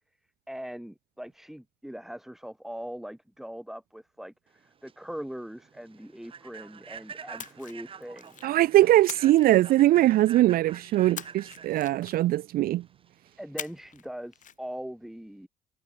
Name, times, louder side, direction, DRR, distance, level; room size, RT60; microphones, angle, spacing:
voice 1, 0.5-8.4 13.4-15.5, equal, ahead, 3.7 m, -41 dB
Human voice / Train, 4.6-13.4, right 7 dB, 30° right, 0.9 m, -47 dB
Splash splatter, 7.4-8.5 9.1-10.3 11.2-12.4 13.6-14.1 14.3-14.5, left 9 dB, 50° left, 1.8 m, -42 dB
voice 2, 8.4-12.8, right 15 dB, 60° right, 0.5 m, -21 dB
cardioid pair, 110°, 17 cm